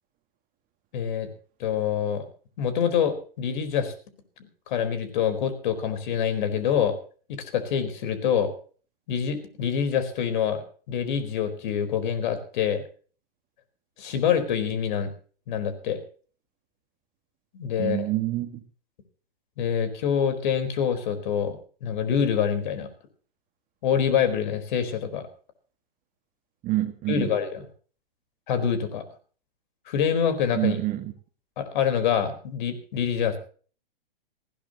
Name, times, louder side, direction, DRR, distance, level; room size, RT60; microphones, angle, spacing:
voice 1, 0.9-1.3 1.6-2.2 2.6-3.9 4.7-6.9 7.3-8.5 9.1-10.6 10.9-12.8 14.0-15.1 15.5-16.0 17.5-18.1 19.6-22.9 23.8-25.3 27.1-27.6 28.5-29.0 29.9-30.8 31.6-33.3, left 8 dB, 55° left, 4.4 m, -26 dB
voice 2, 17.8-18.6 26.6-27.4 30.5-31.1, right 16 dB, 30° right, 1.8 m, -27 dB
19.5 x 16.0 x 3.0 m
hypercardioid pair, 125°, 29 cm